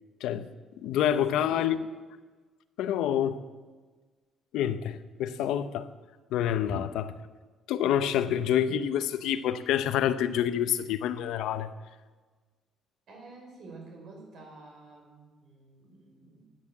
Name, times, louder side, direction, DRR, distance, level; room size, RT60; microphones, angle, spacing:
voice 1, 0.8-1.8 2.8-3.4 4.5-5.9 6.3-7.2 7.7-11.7, left 10 dB, 85° left, 11 dB, 0.9 m, -27 dB
voice 2, 1.4-1.7 13.1-16.5, right 3 dB, 50° right, 1 dB, 5.5 m, -49 dB
17.5 x 10.5 x 7.4 m, 1.3 s
cardioid pair, 170°, 0 cm